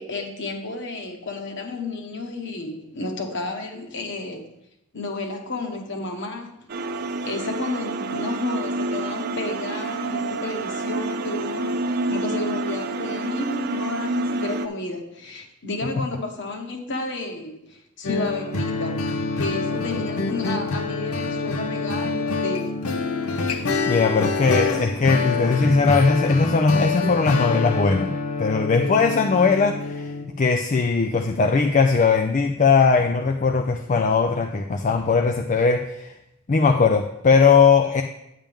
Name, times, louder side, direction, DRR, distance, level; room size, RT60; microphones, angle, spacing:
voice 1, 0.0-4.5 4.9-6.7 7.2-22.9, left 2 dB, 55° left, 4 dB, 1.3 m, -32 dB
sound 1, 6.7-14.7, right 2 dB, 45° right, 0.6 m, -28 dB
sound 2, 18.0-30.3, left 3 dB, 75° left, 0.8 m, -26 dB
voice 2, 23.3-28.1 28.4-36.1 36.5-38.0, left 4 dB, 35° left, 5 dB, 0.4 m, -19 dB
8.9 x 8.8 x 3.6 m, 0.83 s
head